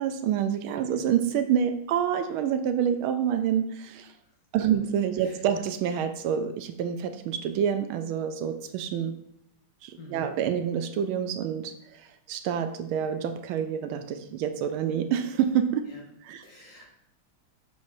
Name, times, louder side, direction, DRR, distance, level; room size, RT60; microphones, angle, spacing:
voice 1, 0.0-4.1 4.5-9.2 9.8-15.8 16.2-16.4, right 8 dB, 80° right, 9 dB, 1.4 m, -27 dB
voice 2, 10.0-10.3 15.9-16.0 16.4-16.9, equal, 40° left, -3 dB, 1.5 m, -48 dB
7.1 x 6.4 x 2.5 m, 0.75 s
omnidirectional pair, 2.3 m